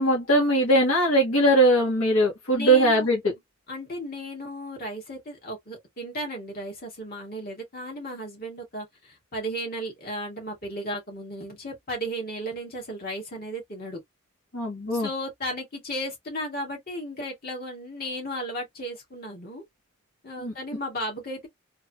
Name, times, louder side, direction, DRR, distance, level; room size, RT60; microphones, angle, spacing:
voice 1, 0.0-3.3 14.5-15.1 20.4-20.5, right 1 dB, 70° left, 1.7 m, -21 dB
voice 2, 2.5-3.1 3.7-14.0 14.9-19.6 20.2-21.5, equal, 45° left, 2.0 m, -35 dB
3.8 x 2.9 x 2.4 m
head